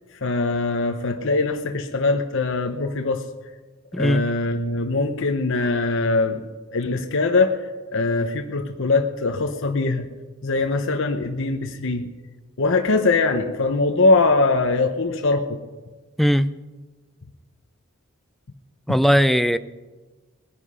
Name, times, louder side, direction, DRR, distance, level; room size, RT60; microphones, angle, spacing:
voice 1, 0.2-3.2 3.9-6.4 6.7-10.1 10.4-12.1 12.6-15.6, left 3 dB, 60° left, 5 dB, 0.9 m, -22 dB
voice 2, 3.9-4.2 16.2-16.5 18.9-19.6, equal, ahead, 12 dB, 0.4 m, -18 dB
20.0 x 9.9 x 5.6 m, 1.3 s
head